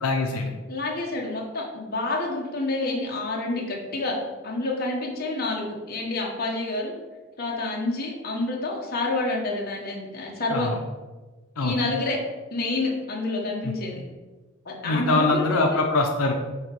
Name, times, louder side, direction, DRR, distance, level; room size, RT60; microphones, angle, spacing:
voice 1, 0.0-0.5 10.5-10.8 11.6-11.8 13.6-13.7 14.8-16.3, left 3 dB, 85° left, 2 dB, 0.7 m, -23 dB
voice 2, 0.7-4.2 4.4-6.9 7.4-10.7 11.6-12.2 12.5-14.0 14.6-15.8, left 2 dB, 45° left, -2 dB, 1.2 m, -28 dB
8.1 x 3.0 x 4.6 m, 1.2 s
head